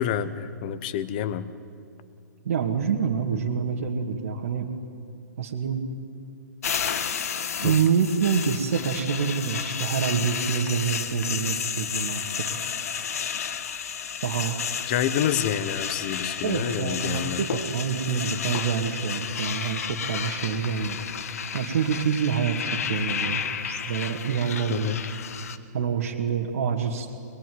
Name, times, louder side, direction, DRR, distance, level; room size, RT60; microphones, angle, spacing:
voice 1, 0.0-1.5 3.3-3.4 7.6-7.8 14.9-17.4 24.7-25.0, left 9 dB, 30° left, 14 dB, 1.0 m, -28 dB
voice 2, 2.4-4.7 5.4-5.9 7.4-12.2 12.5-12.7 14.2-14.6 16.4-21.0 21.5-25.1 25.7-27.1, right 6 dB, 55° right, -1 dB, 2.2 m, -27 dB
sound 1, 6.6-25.6, left 7 dB, 55° left, 1.5 m, -32 dB
23.0 x 22.0 x 9.5 m, 2.4 s
hypercardioid pair, 170°, 10 cm